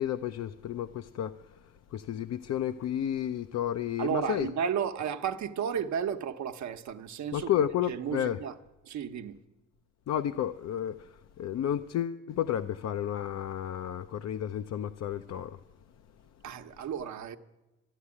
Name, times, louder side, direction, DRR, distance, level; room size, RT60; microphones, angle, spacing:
voice 1, 0.0-1.4 1.9-4.5 7.3-8.4 10.1-15.6, left 10 dB, 60° left, 0.6 m, -32 dB
voice 2, 4.0-7.5 7.9-8.5 8.8-9.4 16.4-17.4, right 8 dB, 70° right, 1.0 m, -33 dB
13.5 x 9.4 x 9.8 m
cardioid pair, 90°, 30 cm